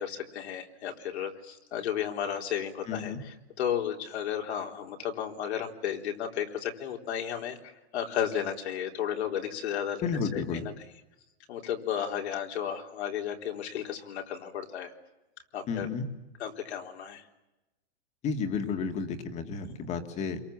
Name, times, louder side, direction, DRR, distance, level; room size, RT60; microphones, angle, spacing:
voice 1, 0.0-10.7 11.5-14.9 15.5-15.9 16.4-17.3, left 9 dB, 85° left, 2 dB, 4.0 m, -33 dB
voice 2, 2.9-3.2 10.0-10.7 15.7-16.1 18.2-20.4, left 5 dB, 20° left, 7 dB, 2.0 m, -32 dB
29.0 x 23.0 x 7.4 m, 1.0 s
supercardioid pair, 170°, 32 cm